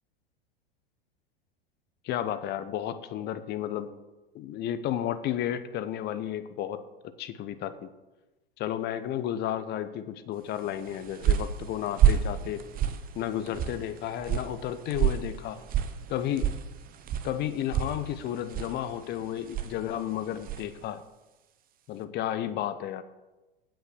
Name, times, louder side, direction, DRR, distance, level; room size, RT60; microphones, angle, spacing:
voice 1, 2.0-3.9 4.3-7.9 8.6-12.6 13.1-15.6 16.1-16.5 17.2-21.0 21.9-23.0, left 11 dB, 35° left, 13 dB, 1.0 m, -32 dB
sound 1, 10.7-20.8, right 9 dB, 30° right, 1.0 m, -30 dB
9.0 x 8.2 x 7.4 m, 1.1 s
hypercardioid pair, 95°, 29 cm